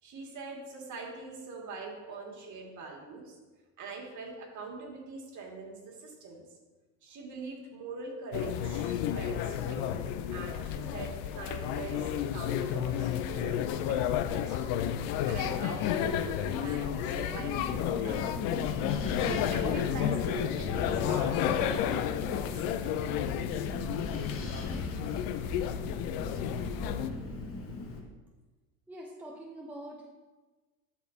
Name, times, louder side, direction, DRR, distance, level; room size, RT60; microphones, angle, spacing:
voice 1, 0.0-3.4 3.8-6.4 7.0-13.6 13.9-14.7 15.0-18.6 19.2-22.5, right 4 dB, 40° right, -1 dB, 2.2 m, -43 dB
sound 1, 8.3-27.1, left 10 dB, 55° left, 0.6 m, -31 dB
Wind, 17.3-28.0, left 2 dB, 30° left, 1.4 m, -39 dB
voice 2, 28.9-30.1, right 1 dB, 5° right, -1 dB, 0.7 m, -44 dB
11.5 x 4.6 x 2.8 m, 1.2 s
hypercardioid pair, 100°, 43 cm